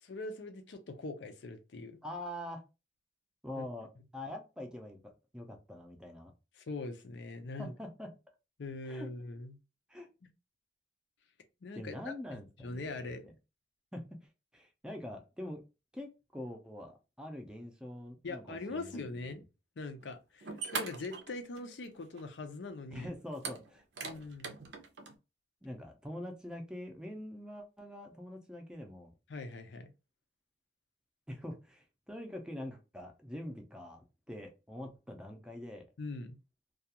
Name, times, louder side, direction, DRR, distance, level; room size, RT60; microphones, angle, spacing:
voice 1, 0.0-2.0 3.5-3.6 6.6-7.7 8.6-9.6 11.6-13.3 18.2-19.4 19.8-23.1 24.0-24.6 29.3-29.9 36.0-36.4, left 2 dB, 90° left, 0.5 m, -42 dB
voice 2, 2.0-2.6 3.4-6.3 7.6-8.1 8.9-9.1 9.9-10.1 11.7-13.1 13.9-15.6 15.9-19.2 22.9-23.8 25.6-29.1 31.3-35.9, left 1 dB, 5° right, 0.4 m, -44 dB
sound 1, 20.0-20.1 20.4-21.8 22.2-22.3 23.3-25.1, right 4 dB, 85° right, 0.5 m, -41 dB
2.3 x 2.3 x 2.8 m
head